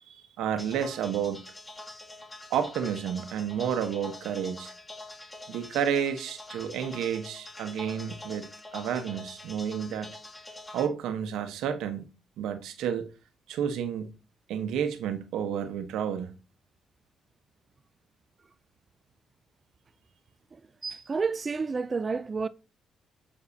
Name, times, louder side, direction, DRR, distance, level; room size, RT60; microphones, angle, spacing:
voice 1, 0.1-1.4 2.5-4.7 5.5-10.2 10.7-12.0 12.4-13.1 13.5-14.2 14.5-16.3, right 8 dB, 90° right, 1.1 m, -31 dB
sound 1, 0.6-10.9, left 2 dB, 15° left, 2.5 m, -45 dB
voice 2, 20.5-22.5, right 4 dB, 35° right, 0.5 m, -30 dB
7.5 x 7.1 x 2.8 m
cardioid pair, 80°, 0 cm